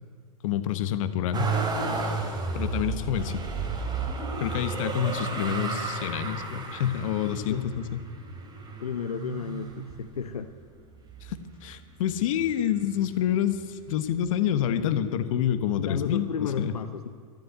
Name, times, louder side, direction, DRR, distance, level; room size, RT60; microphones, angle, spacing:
voice 1, 0.4-1.5 2.5-3.4 4.4-8.0 11.2-16.7, left 10 dB, 60° left, 11 dB, 1.2 m, -28 dB
Motor vehicle (road), 1.3-10.5 11.1-11.9 12.1-13.3 14.3-14.4, right 4 dB, 20° right, 2.8 m, -32 dB
voice 2, 8.8-10.5 15.8-17.1, left 6 dB, 85° left, 8 dB, 0.8 m, -32 dB
13.0 x 11.5 x 9.4 m, 2.2 s
hypercardioid pair, 105°, 19 cm